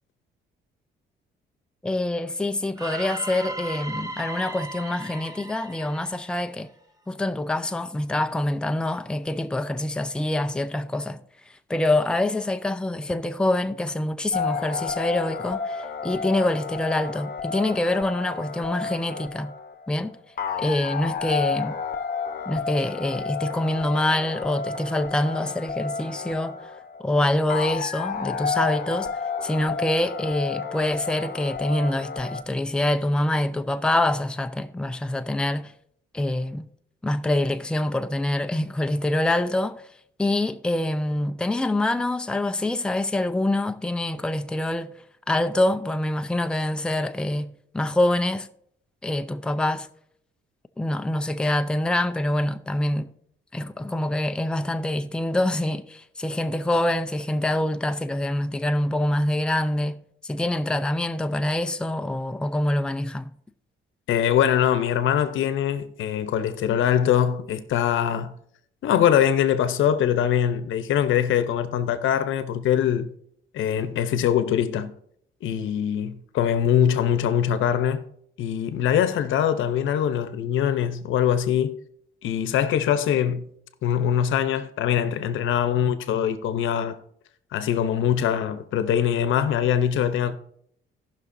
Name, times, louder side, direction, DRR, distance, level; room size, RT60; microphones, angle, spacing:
voice 1, 1.8-6.7 7.1-11.2 11.7-19.5 19.9-20.1 20.6-21.8 22.5-26.6 27.0-29.1 29.4-35.7 36.1-36.7 37.0-39.8 40.2-44.9 45.3-48.5 49.0-49.9 50.8-53.1 53.5-63.3, left 1 dB, 5° left, 0.5 m, -25 dB
sound 1, 2.8-6.8, right 1 dB, 15° right, 1.0 m, -36 dB
sound 2, 14.3-32.4, left 5 dB, 50° left, 1.0 m, -31 dB
voice 2, 64.1-68.3 68.8-73.1 73.5-74.9 75.4-78.0 78.4-81.8 82.2-83.5 83.8-87.0 87.5-90.3, left 9 dB, 80° left, 0.8 m, -23 dB
18.0 x 6.0 x 2.7 m
cardioid pair, 90°, 20 cm